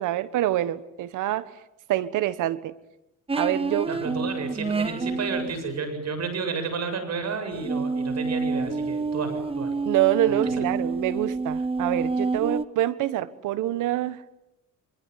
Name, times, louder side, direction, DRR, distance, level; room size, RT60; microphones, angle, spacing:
voice 1, 0.0-1.5 1.9-2.7 3.4-3.9 9.8-14.2, right 14 dB, 90° right, 16 dB, 1.4 m, -26 dB
sound 1, 3.3-5.5 7.6-12.6, right 3 dB, 20° right, 1.0 m, -28 dB
voice 2, 3.9-9.8 10.3-10.6, right 4 dB, 60° right, 9 dB, 7.7 m, -31 dB
25.5 x 24.0 x 9.5 m, 0.88 s
cardioid pair, 90°, 30 cm